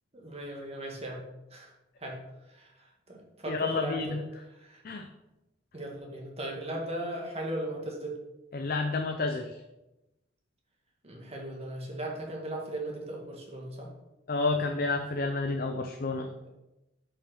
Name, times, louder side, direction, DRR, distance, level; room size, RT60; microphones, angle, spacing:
voice 1, 0.1-1.2 1.5-1.7 2.0-2.2 2.5-4.2 4.5-4.8 5.7-8.2 11.0-13.9, right 1 dB, 35° right, -1 dB, 1.9 m, -37 dB
voice 2, 3.5-4.2 4.8-5.0 8.5-9.5 14.3-16.3, left 3 dB, 50° left, 4 dB, 0.6 m, -30 dB
6.8 x 5.7 x 6.0 m, 0.97 s
head